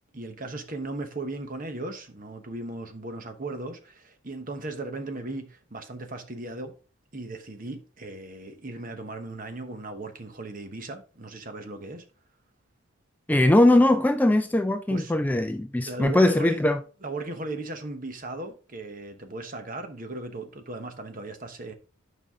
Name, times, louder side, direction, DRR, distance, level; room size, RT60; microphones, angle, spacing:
voice 1, 0.1-6.7 7.1-12.0 14.9-15.1 15.8-16.6 17.0-21.7, right 2 dB, 40° right, 1.1 m, -37 dB
voice 2, 13.3-16.8, left 1 dB, 10° left, 0.4 m, -20 dB
9.1 x 5.4 x 3.6 m
head